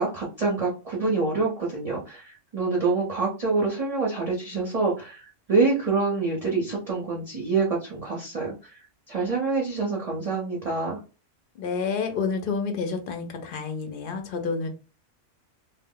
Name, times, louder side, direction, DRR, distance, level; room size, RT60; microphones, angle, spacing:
voice 1, 0.0-8.5 9.1-11.0, right 4 dB, 45° right, -3 dB, 0.5 m, -26 dB
voice 2, 11.6-14.7, left 5 dB, 60° left, 6 dB, 0.5 m, -29 dB
2.1 x 2.0 x 3.6 m, 0.32 s
omnidirectional pair, 1.3 m